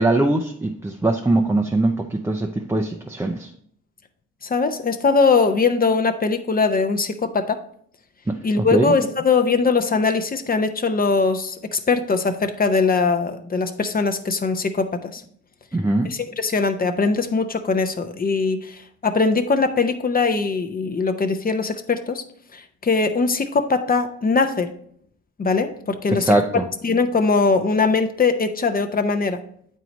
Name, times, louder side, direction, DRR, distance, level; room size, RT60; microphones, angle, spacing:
voice 1, 0.0-3.5 8.3-8.9 15.7-16.1 26.1-26.7, right 2 dB, 10° right, 2 dB, 0.5 m, -21 dB
voice 2, 4.4-7.6 8.4-15.2 16.0-22.2 22.5-24.7 25.4-29.4, left 4 dB, 30° left, 7 dB, 0.7 m, -21 dB
7.8 x 4.6 x 4.1 m, 0.64 s
cardioid pair, 90°, 30 cm